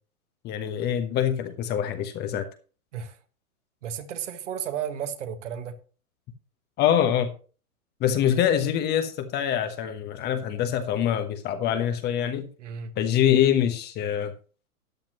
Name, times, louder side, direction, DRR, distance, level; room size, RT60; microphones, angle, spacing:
voice 1, 0.4-2.4 6.8-7.3 8.0-12.5 13.0-14.3, left 9 dB, 25° left, 1.0 m, -24 dB
voice 2, 3.8-5.8 12.6-12.9, right 8 dB, 55° right, 1.8 m, -33 dB
13.5 x 10.5 x 3.0 m
figure-of-eight pair, 110°, 44 cm